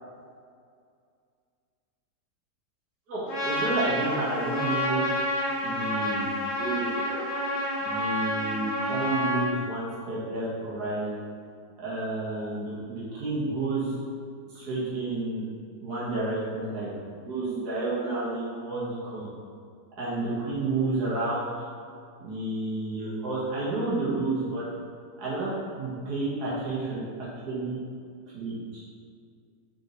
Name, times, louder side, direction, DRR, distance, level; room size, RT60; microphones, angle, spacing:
voice 1, 3.1-5.0 5.6-7.2 7.8-11.1 11.8-13.9 14.5-15.4 15.8-19.3 20.0-21.6 22.2-24.6 25.2-27.0 27.5-27.8 28.3-28.8, right 2 dB, 65° right, -9 dB, 2.1 m, -30 dB
Trumpet, 3.3-9.5, left 1 dB, 85° left, 2.1 m, -29 dB
5.7 x 5.5 x 3.1 m, 2.3 s
omnidirectional pair, 1.9 m